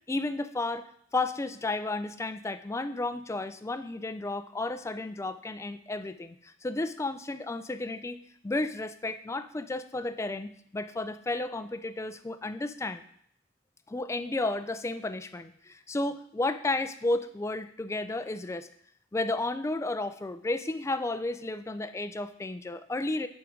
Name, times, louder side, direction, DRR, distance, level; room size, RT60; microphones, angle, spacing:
voice 1, 0.1-8.2 8.4-13.0 13.9-18.7 19.1-23.3, left 2 dB, 15° left, 10 dB, 0.3 m, -32 dB
8.7 x 3.6 x 5.1 m, 0.65 s
head